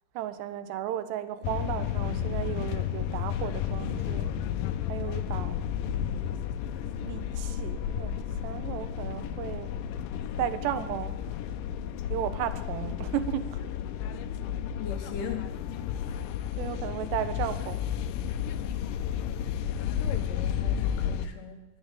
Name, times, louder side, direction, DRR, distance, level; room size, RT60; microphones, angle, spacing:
voice 1, 0.2-4.3 4.9-5.6 7.0-8.1 8.4-9.7 10.4-11.2 12.1-13.7 16.6-17.8, right 11 dB, 90° right, 12 dB, 3.1 m, -34 dB
sound 1, 1.4-21.3, left 9 dB, 90° left, 2.0 m, -32 dB
voice 2, 14.5-15.5 20.0-21.7, left 7 dB, 70° left, 5 dB, 2.2 m, -39 dB
19.5 x 7.0 x 9.0 m, 1.1 s
omnidirectional pair, 4.8 m